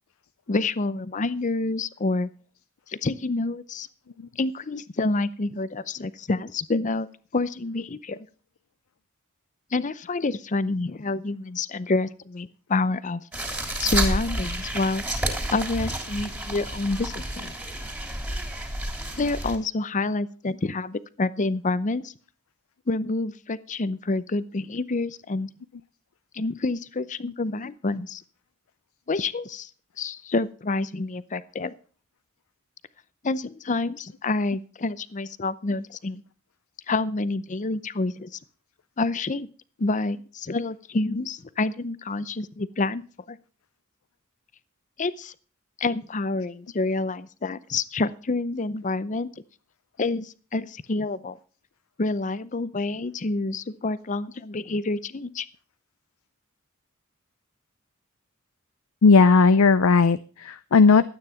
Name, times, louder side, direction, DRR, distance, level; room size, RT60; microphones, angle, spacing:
voice 1, 0.5-2.3 2.9-3.9 4.4-7.1 7.3-8.2 9.7-13.2 13.8-15.0 15.5-17.5 19.2-22.1 22.9-25.5 26.3-28.2 29.1-29.7 30.0-31.7 33.2-36.2 36.9-38.3 39.0-39.5 39.8-43.0 43.3-43.4 45.0-45.3 45.8-49.3 50.0-51.4 52.0-55.5, left 3 dB, 35° left, 16 dB, 0.6 m, -28 dB
sound 1, 13.3-19.6, right 1 dB, 10° right, 3.3 m, -30 dB
voice 2, 59.0-61.0, left 4 dB, 80° left, 14 dB, 0.5 m, -16 dB
12.5 x 9.2 x 5.8 m, 0.40 s
head